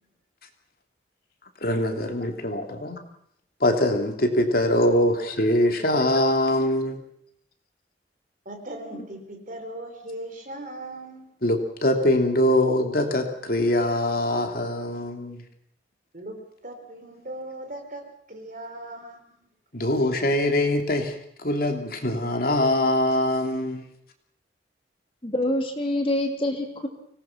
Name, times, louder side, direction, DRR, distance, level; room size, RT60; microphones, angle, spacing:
voice 1, 1.6-3.0 3.6-7.0 11.4-15.4 19.7-23.8, left 1 dB, 50° left, 4 dB, 2.9 m, -23 dB
voice 2, 8.5-11.2 16.1-16.4 16.6-18.0 18.3-19.2, right 1 dB, 45° right, 5 dB, 4.2 m, -38 dB
voice 3, 25.2-26.9, left 1 dB, 30° left, 3 dB, 2.8 m, -26 dB
24.5 x 19.0 x 5.9 m, 0.68 s
head